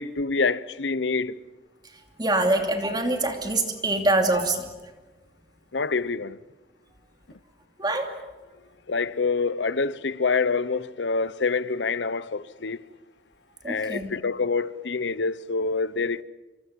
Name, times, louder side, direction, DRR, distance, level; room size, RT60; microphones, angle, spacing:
voice 1, 0.0-1.4 5.7-6.4 8.9-12.8 13.7-16.2, left 4 dB, 90° left, 0.8 m, -26 dB
voice 2, 2.2-4.7 7.8-8.1 13.6-14.1, right 2 dB, 25° right, 2.7 m, -24 dB
27.0 x 26.0 x 7.4 m
head